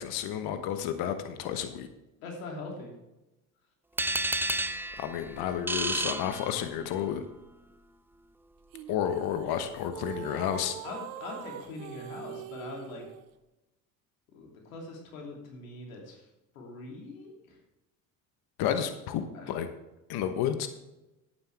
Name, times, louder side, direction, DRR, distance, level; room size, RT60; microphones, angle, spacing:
voice 1, 0.0-1.9 4.6-4.7 5.0-7.2 8.9-10.8 18.6-19.7 20.1-20.7, left 9 dB, 65° left, 9 dB, 1.2 m, -31 dB
voice 2, 2.2-2.9 10.8-13.0 14.3-16.3 16.5-17.6 19.3-19.5, left 3 dB, 90° left, 0 dB, 3.0 m, -42 dB
sound 1, 4.0-7.0, right 2 dB, 5° right, 0.5 m, -31 dB
sound 2, 8.7-13.3, right 10 dB, 85° right, 0.8 m, -43 dB
11.5 x 9.3 x 3.4 m, 0.98 s
hypercardioid pair, 70°, 40 cm